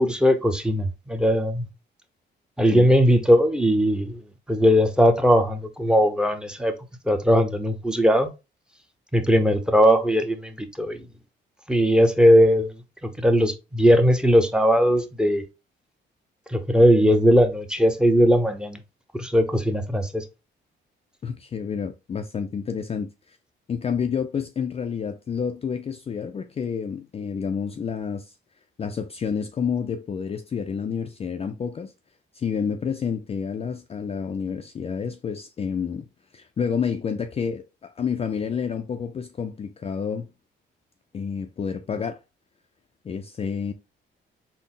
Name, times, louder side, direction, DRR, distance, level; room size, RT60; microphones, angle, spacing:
voice 1, 0.0-1.7 2.6-4.2 4.5-6.7 7.0-8.3 9.1-11.1 11.7-12.8 13.0-15.4 16.5-18.8 19.1-20.2, equal, 5° right, 0.6 m, -19 dB
voice 2, 21.2-23.4 23.7-28.3 28.8-31.9 32.3-36.1 36.3-40.3 41.1-42.2 43.0-43.7, left 6 dB, 30° left, 0.4 m, -29 dB
3.8 x 2.0 x 3.7 m
cardioid pair, 90°, 20 cm